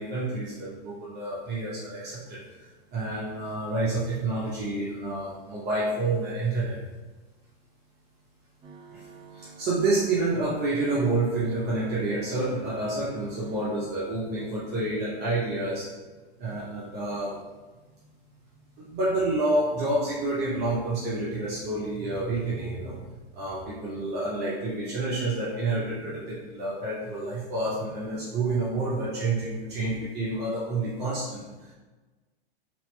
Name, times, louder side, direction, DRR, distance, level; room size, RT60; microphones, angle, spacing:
voice 1, 0.0-6.8 8.9-9.0 9.3-15.9 16.4-17.4 17.9-18.1 18.8-23.0 23.3-31.7, right 2 dB, 30° right, -8 dB, 0.9 m, -29 dB
sound 1, 8.6-13.8, right 3 dB, 15° right, 0.5 m, -48 dB
3.0 x 2.8 x 3.2 m, 1.2 s
hypercardioid pair, 105°, 32 cm